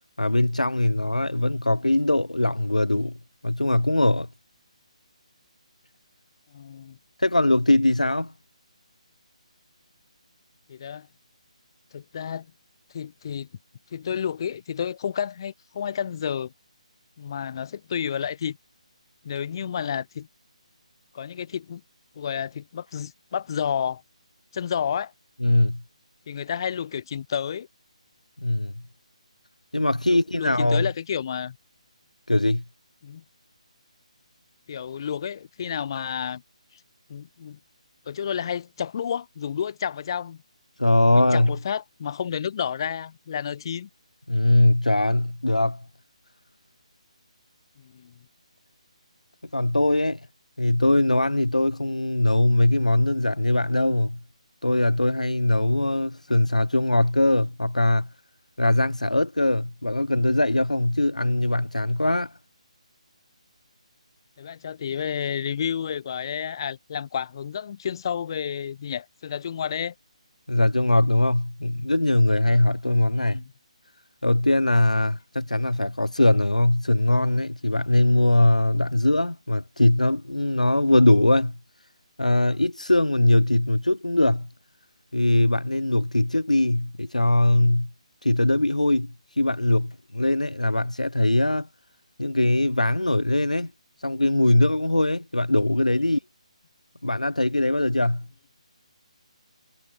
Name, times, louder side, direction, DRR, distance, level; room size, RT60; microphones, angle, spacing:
voice 1, 0.2-3.1 3.4-4.3 7.2-8.3 25.4-25.8 28.4-28.7 29.7-30.9 32.3-32.6 40.8-41.6 44.3-45.8 49.5-50.2 50.6-54.2 54.6-58.1 58.6-62.3 70.5-73.4 74.2-81.6 82.2-84.5 85.1-87.9 88.2-91.7 92.2-93.7 94.0-96.2 97.0-98.3, left 1 dB, 90° left, 1.1 m, -21 dB
voice 2, 6.5-7.0 10.7-11.1 11.9-12.5 12.9-13.5 13.9-16.5 17.2-18.6 19.2-20.3 21.1-21.8 22.1-24.0 24.5-25.1 26.3-27.7 30.1-31.6 33.0-33.2 34.7-36.4 37.1-37.6 38.1-40.4 41.1-43.9 47.8-48.1 64.4-69.9 73.1-73.4, left 8 dB, 40° left, 3.3 m, -30 dB
figure-of-eight pair, 150°, 4 cm